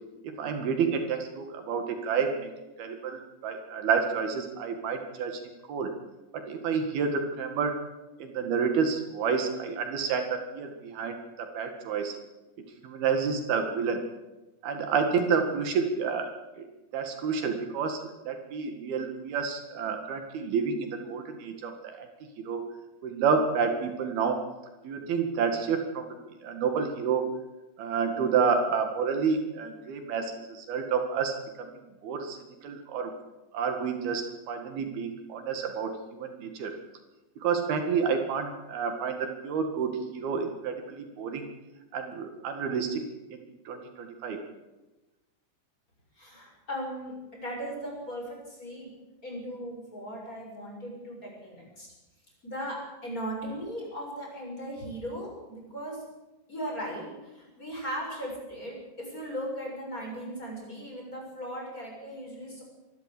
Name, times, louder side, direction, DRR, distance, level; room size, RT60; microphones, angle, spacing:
voice 1, 0.4-2.5 2.8-5.4 5.7-5.9 6.3-7.7 8.2-12.2 12.8-14.1 14.6-16.3 16.6-16.7 16.9-22.1 22.4-22.7 23.0-24.4 24.8-26.2 26.4-27.2 27.8-33.1 33.5-36.7 37.4-41.5 41.9-43.0 43.3-44.4, right 6 dB, 75° right, 6 dB, 3.8 m, -29 dB
voice 2, 46.2-48.9 49.2-51.9 52.4-56.0 56.5-62.6, equal, 20° left, -1 dB, 6.8 m, -38 dB
25.5 x 12.5 x 8.4 m, 1.1 s
omnidirectional pair, 4.5 m